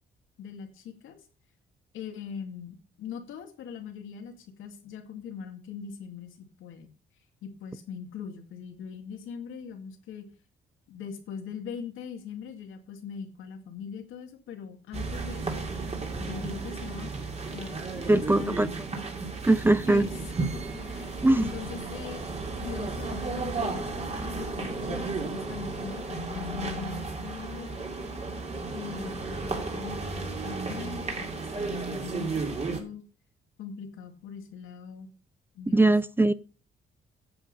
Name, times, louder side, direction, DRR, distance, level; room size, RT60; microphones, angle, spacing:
voice 1, 0.4-1.2 1.9-6.9 7.4-10.2 10.9-15.7 16.2-18.8 19.9-20.1 20.4-27.8 28.7-32.4 32.7-33.0 33.6-35.1 35.5-35.9, left 7 dB, 80° left, 2.3 m, -41 dB
sound 1, 14.9-32.8, right 3 dB, 35° right, 2.8 m, -34 dB
voice 2, 18.1-18.7 19.5-20.1 21.2-21.5 35.7-36.3, right 2 dB, 10° right, 0.5 m, -21 dB
10.5 x 7.4 x 5.5 m
cardioid pair, 90°, 20 cm